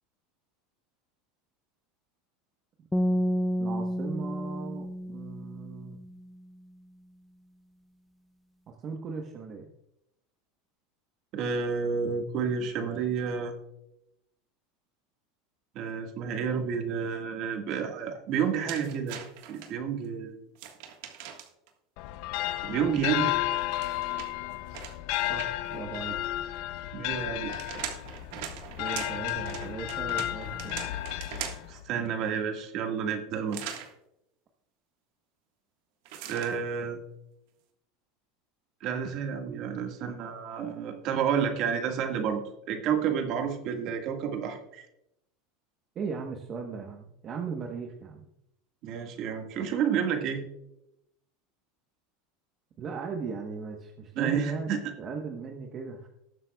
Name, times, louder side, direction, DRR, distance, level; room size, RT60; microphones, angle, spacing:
sound 1, 2.9-6.1, equal, 10° left, 0.5 m, -30 dB
voice 1, 3.6-6.0 8.7-9.7 25.3-26.2 28.8-30.7 45.9-48.3 52.8-54.7 55.0-56.1, right 5 dB, 35° right, 2 dB, 1.1 m, -37 dB
voice 2, 11.3-13.6 15.8-19.2 19.5-20.4 22.6-23.3 26.9-27.7 31.7-33.6 36.3-37.0 38.8-42.4 42.7-44.9 48.8-50.4 54.2-54.8, right 7 dB, 50° right, 5 dB, 1.7 m, -30 dB
sound 2, 18.7-19.7 20.6-21.7 23.5-25.8 27.2-31.8 33.5-33.9 36.1-36.6, right 9 dB, 70° right, 1.6 m, -41 dB
sound 3, 22.0-31.9, left 15 dB, 65° left, 0.6 m, -33 dB
19.5 x 7.4 x 2.3 m, 0.82 s
supercardioid pair, 125°, 0 cm